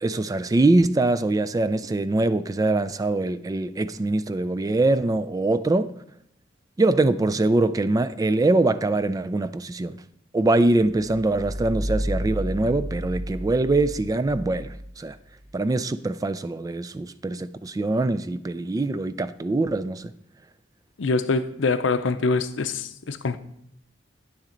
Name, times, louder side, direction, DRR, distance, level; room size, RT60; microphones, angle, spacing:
voice 1, 0.0-5.9 6.8-10.0 10.3-15.2 15.5-20.1, right 2 dB, 20° right, 0.3 m, -23 dB
sound 1, 10.9-15.6, equal, 65° right, 1.9 m, -32 dB
voice 2, 21.0-23.4, left 3 dB, 80° left, 0.6 m, -24 dB
9.2 x 7.2 x 3.9 m
head